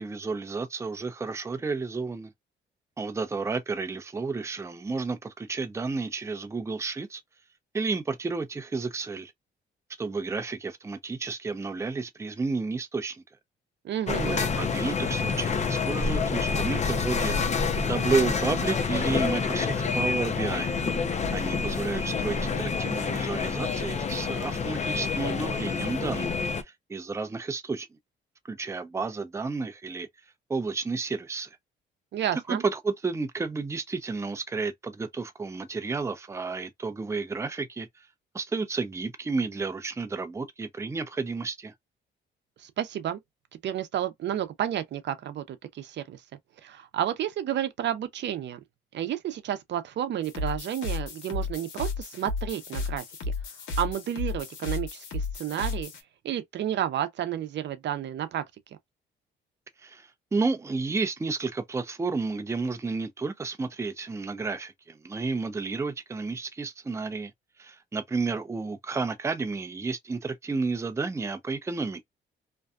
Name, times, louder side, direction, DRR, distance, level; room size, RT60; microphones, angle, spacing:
voice 1, 0.0-2.3 3.0-7.2 7.7-9.3 10.0-13.2 14.1-17.4 17.9-20.7 21.3-26.4 26.9-27.9 28.5-30.1 30.5-31.5 32.5-38.1 38.3-41.7 59.8-67.3 67.6-72.1, right 4 dB, 15° right, 0.5 m, -31 dB
voice 2, 13.8-14.4 32.1-32.6 42.6-43.2 43.6-46.2 46.6-48.6 48.9-53.3 53.8-55.9 56.2-58.4, right 10 dB, 65° right, 0.6 m, -31 dB
sound 1, 14.1-26.6, left 5 dB, 35° left, 0.6 m, -28 dB
sound 2, 50.2-56.0, left 3 dB, 75° left, 1.0 m, -33 dB
2.6 x 2.2 x 2.4 m
cardioid pair, 90°, 20 cm